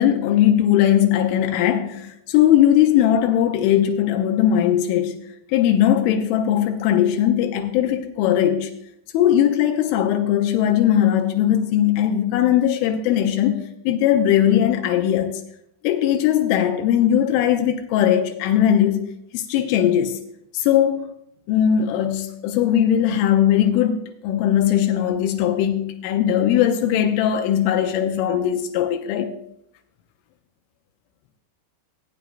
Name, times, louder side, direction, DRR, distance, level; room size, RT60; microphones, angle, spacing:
voice 1, 0.0-8.7 9.1-15.4 15.8-19.0 19.3-20.2 20.5-21.1 21.5-24.0 24.2-29.3, left 10 dB, 85° left, 3.2 m, -19 dB
17.0 x 9.0 x 2.5 m
omnidirectional pair, 5.5 m